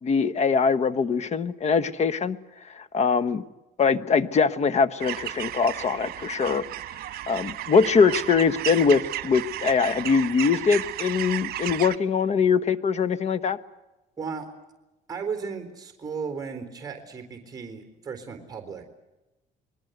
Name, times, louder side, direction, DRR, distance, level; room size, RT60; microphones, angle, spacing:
voice 1, 0.0-2.4 2.7-3.4 3.8-6.6 7.3-13.6, left 5 dB, 40° left, 15 dB, 1.3 m, -22 dB
sound 1, 5.0-12.0, right 13 dB, 65° right, 1.4 m, -33 dB
voice 2, 14.2-14.5 15.1-18.8, right 5 dB, 20° right, 6 dB, 3.9 m, -35 dB
28.0 x 21.0 x 8.1 m, 1.0 s
cardioid pair, 110°, 17 cm